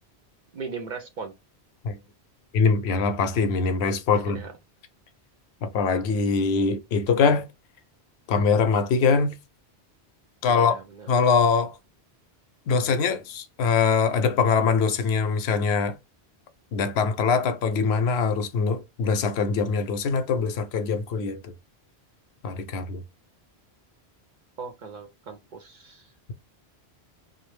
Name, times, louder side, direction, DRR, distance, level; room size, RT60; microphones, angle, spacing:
voice 1, 0.5-1.4 4.1-4.5 10.5-11.1 24.6-26.3, right 5 dB, 55° right, 0.6 m, -38 dB
voice 2, 2.5-4.4 5.6-7.5 8.3-9.4 10.4-10.8 11.1-11.8 12.7-16.0 16.7-21.5 22.4-23.0, left 5 dB, 75° left, 0.8 m, -23 dB
2.3 x 2.0 x 3.1 m
omnidirectional pair, 1.1 m